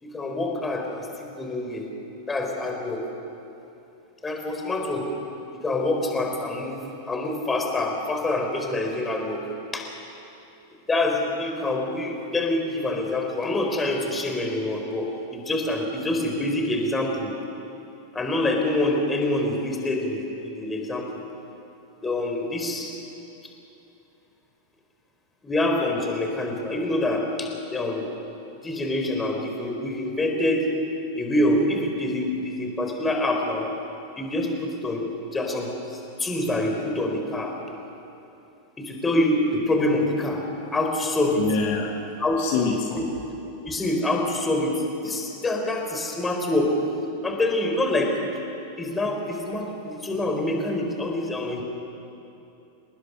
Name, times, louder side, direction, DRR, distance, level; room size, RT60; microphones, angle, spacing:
voice 1, 0.0-1.9 2.3-3.0 4.2-5.1 5.6-6.8 7.0-9.4 9.7-9.9 10.9-17.3 18.1-21.2 22.0-22.9 25.4-28.1 28.6-30.7 31.1-33.7 34.1-37.5 38.8-40.4 40.7-41.4 42.2-42.4 42.9-43.0 43.6-46.7 47.2-48.1 48.8-51.6, left 1 dB, 15° left, 2 dB, 4.0 m, -26 dB
voice 2, 41.4-41.9 42.4-42.9, left 5 dB, 45° left, 0 dB, 2.5 m, -25 dB
27.5 x 19.5 x 6.3 m, 2.8 s
figure-of-eight pair, 90°, 0 cm